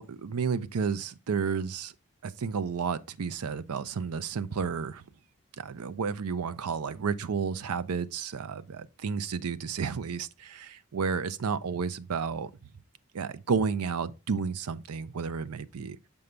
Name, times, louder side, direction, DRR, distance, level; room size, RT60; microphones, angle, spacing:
voice 1, 0.0-1.9 2.2-5.0 5.6-12.5 13.1-16.0, right 5 dB, 85° right, 0.5 m, -31 dB
6.9 x 5.3 x 3.2 m
head